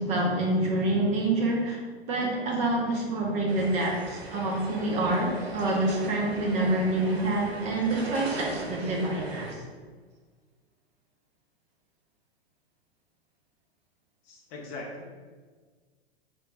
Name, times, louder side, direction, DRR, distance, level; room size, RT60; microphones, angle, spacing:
voice 1, 0.0-1.8 2.1-9.5, right 2 dB, 25° right, -1 dB, 0.6 m, -27 dB
sound 1, 3.5-9.5, right 2 dB, 85° right, 0.7 m, -39 dB
voice 2, 14.2-15.2, left 2 dB, 30° left, 0 dB, 0.5 m, -40 dB
3.2 x 2.1 x 4.0 m, 1.5 s
figure-of-eight pair, 105°, 31 cm